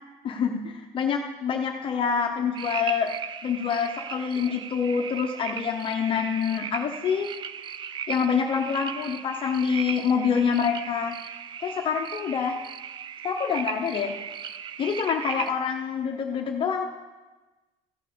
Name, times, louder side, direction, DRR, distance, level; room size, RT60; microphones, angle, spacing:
voice 1, 0.2-3.1 3.4-7.3 8.1-11.2 11.6-12.6 13.2-14.2 14.8-16.9, left 6 dB, 35° left, 3 dB, 0.8 m, -26 dB
sound 1, 2.5-15.5, right 8 dB, 30° right, 0.4 m, -37 dB
15.0 x 5.3 x 5.5 m, 1.2 s
cardioid pair, 160°, 15 cm